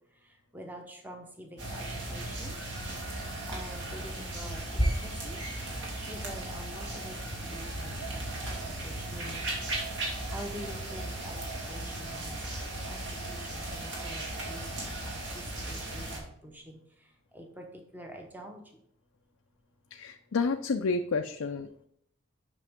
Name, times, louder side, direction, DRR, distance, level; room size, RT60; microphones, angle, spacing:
voice 1, 0.5-2.5 3.5-5.4 6.1-8.2 8.6-9.4 10.3-12.4 12.9-13.0 13.3-16.8 17.3-17.6 17.9-18.6, equal, 10° right, 2 dB, 0.8 m, -46 dB
sound 1, 1.6-16.2, right 1 dB, 60° right, 2.4 m, -36 dB
voice 2, 19.9-21.8, left 4 dB, 85° left, 5 dB, 0.5 m, -30 dB
8.3 x 6.0 x 3.6 m, 0.73 s
head